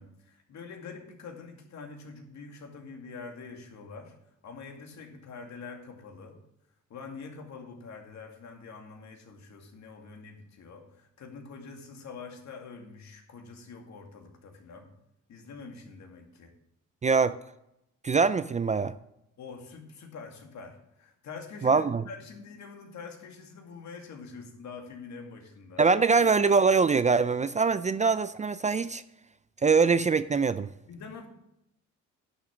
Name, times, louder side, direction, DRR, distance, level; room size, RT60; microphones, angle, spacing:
voice 1, 0.0-4.1 4.4-6.4 6.9-14.9 15.3-16.5 19.4-25.8 30.9-31.3, left 4 dB, 65° left, 2.4 m, -45 dB
voice 2, 17.0-17.4 18.0-18.9 21.6-22.0 25.8-29.0 29.6-30.7, right 5 dB, 25° right, 0.4 m, -23 dB
11.0 x 7.0 x 6.0 m
cardioid pair, 90°, 30 cm